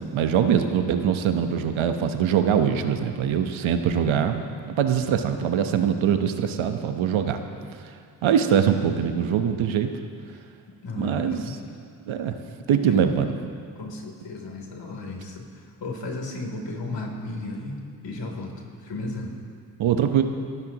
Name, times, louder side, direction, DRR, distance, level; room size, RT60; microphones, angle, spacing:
voice 1, 0.0-7.4 8.2-9.9 11.0-11.4 12.1-12.4 12.7-13.3 19.8-20.2, right 8 dB, 70° right, 7 dB, 1.1 m, -23 dB
voice 2, 10.8-11.6 12.9-13.0 13.8-17.8 18.0-19.3, left 2 dB, 60° left, 1 dB, 3.4 m, -34 dB
24.5 x 14.0 x 3.0 m, 2.3 s
supercardioid pair, 55°, 49 cm